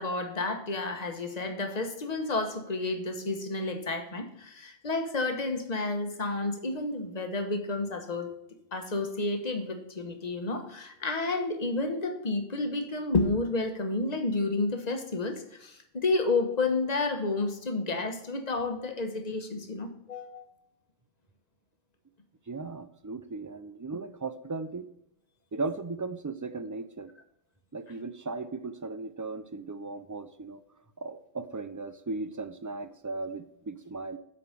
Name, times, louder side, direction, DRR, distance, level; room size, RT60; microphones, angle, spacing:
voice 1, 0.0-8.3 8.7-20.5, left 3 dB, 40° left, 6 dB, 1.3 m, -30 dB
voice 2, 22.5-24.9 25.5-27.1 27.7-30.6 31.0-34.2, right 3 dB, 30° right, 12 dB, 0.3 m, -37 dB
8.0 x 5.0 x 6.6 m, 0.78 s
omnidirectional pair, 1.0 m